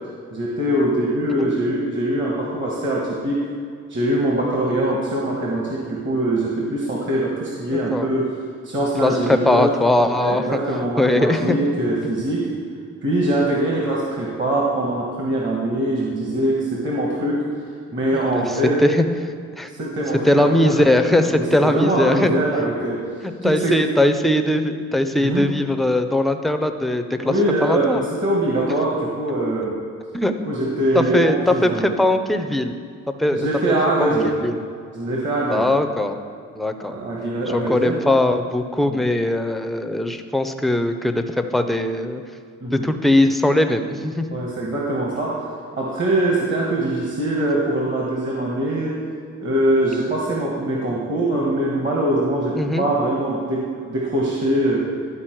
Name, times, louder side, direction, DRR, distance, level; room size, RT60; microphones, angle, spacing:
voice 1, 0.3-3.4 3.9-8.3 8.6-9.8 10.0-12.5 13.0-17.4 17.9-18.8 19.7-20.9 21.3-23.1 23.4-23.8 25.1-25.5 27.2-29.8 30.5-31.9 33.3-34.4 34.9-35.7 36.8-38.0 38.9-39.1 42.6-42.9 44.3-49.0 49.4-54.9, right 1 dB, 40° right, -3 dB, 1.3 m, -23 dB
voice 2, 9.0-10.6 11.0-11.6 18.1-19.0 19.5-19.7 20.2-22.3 23.2-27.3 27.6-28.0 30.1-30.3 30.9-32.7 33.2-33.5 34.0-34.1 34.4-34.6 35.5-36.2 36.6-36.9 37.5-42.2 42.7-44.3 52.6-52.9, left 1 dB, ahead, 7 dB, 0.5 m, -20 dB
11.5 x 4.2 x 4.5 m, 2.2 s
cardioid pair, 90°, 30 cm